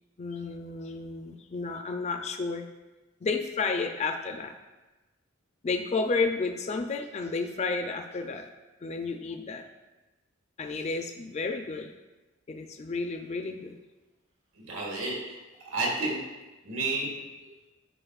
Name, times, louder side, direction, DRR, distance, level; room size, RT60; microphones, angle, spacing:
voice 1, 0.2-2.7 3.2-4.5 5.6-8.5 8.8-9.6 10.6-11.9 12.5-13.8, left 4 dB, 35° left, 5 dB, 0.4 m, -31 dB
voice 2, 14.5-15.4 15.6-16.2 16.6-17.1 17.4-17.5, right 2 dB, 80° right, -3 dB, 1.8 m, -31 dB
9.9 x 4.7 x 2.4 m, 1.1 s
head